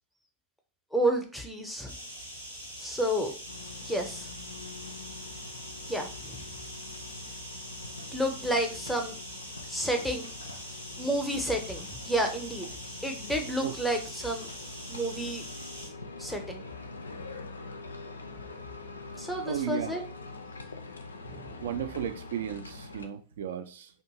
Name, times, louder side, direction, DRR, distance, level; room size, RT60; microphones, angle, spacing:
voice 1, 0.9-1.9 2.8-3.3 3.8-4.3 5.9-6.4 8.1-9.2 9.7-10.3 11.0-12.7 13.0-14.5 14.9-15.4 16.2-16.6 19.2-20.0 21.2-21.6, right 1 dB, ahead, 0.6 m, -30 dB
sound 1, 1.9-15.9, equal, 85° right, 0.9 m, -43 dB
sound 2, 3.5-23.1, left 3 dB, 75° left, 0.3 m, -44 dB
voice 2, 19.5-19.9 21.6-23.9, right 9 dB, 60° right, 0.3 m, -34 dB
2.5 x 2.3 x 2.8 m
figure-of-eight pair, 90°, 0 cm